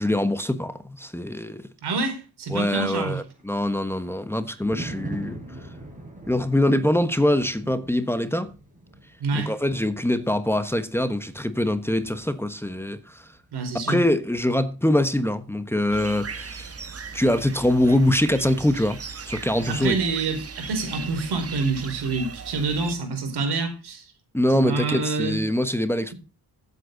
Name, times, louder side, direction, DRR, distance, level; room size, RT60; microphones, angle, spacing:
voice 1, 0.0-1.6 2.5-5.4 6.3-8.5 9.3-13.3 13.9-16.7 17.1-19.0 19.2-20.0 24.3-26.1, left 1 dB, 5° left, 1.2 m, -23 dB
voice 2, 1.8-3.2 9.2-9.5 13.5-14.0 19.7-24.0 24.5-25.4, right 3 dB, 85° right, 4.6 m, -27 dB
Thunder, 3.2-17.4 17.7-18.0, right 1 dB, 20° right, 6.9 m, -44 dB
sound 1, 15.9-23.0, right 5 dB, 40° right, 1.6 m, -38 dB
14.5 x 8.3 x 4.0 m
cardioid pair, 80°, 38 cm